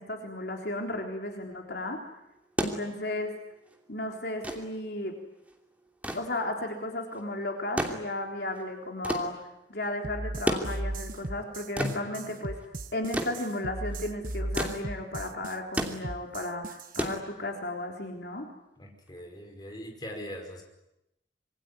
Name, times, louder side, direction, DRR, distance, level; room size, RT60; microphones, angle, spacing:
voice 1, 0.0-2.0 2.6-3.3 3.9-5.1 6.1-12.6 12.9-18.5, left 1 dB, 55° left, 2 dB, 3.7 m, -34 dB
sound 1, 2.3-17.8 19.1-19.2, right 1 dB, 10° right, 2.8 m, -35 dB
sound 2, 10.0-17.1, right 1 dB, 45° right, 1.3 m, -37 dB
voice 2, 11.8-12.1 18.8-20.6, left 1 dB, 20° left, 3 dB, 5.4 m, -39 dB
26.0 x 23.0 x 9.9 m, 0.86 s
head